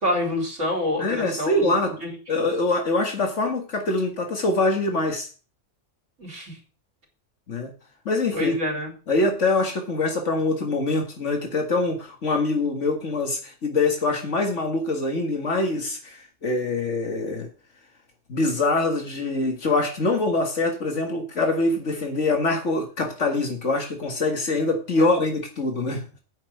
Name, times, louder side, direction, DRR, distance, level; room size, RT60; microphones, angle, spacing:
voice 1, 0.0-1.7 2.0-2.1 6.2-6.6 8.3-8.9 25.0-25.1, left 1 dB, 80° right, 0 dB, 3.5 m, -27 dB
voice 2, 1.0-1.9 2.3-5.3 7.5-7.7 8.1-8.5 9.1-17.5 18.3-26.0, left 2 dB, 75° left, 3 dB, 2.1 m, -24 dB
8.8 x 5.7 x 8.0 m, 0.36 s
omnidirectional pair, 1.3 m